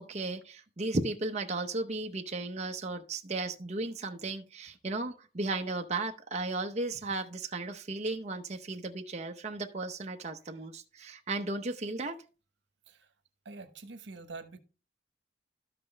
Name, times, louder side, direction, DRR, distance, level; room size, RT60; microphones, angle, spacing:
voice 1, 0.0-12.2, right 2 dB, 35° right, 0.7 m, -35 dB
voice 2, 13.4-14.6, right 3 dB, 75° right, 1.1 m, -45 dB
12.5 x 5.9 x 3.3 m
head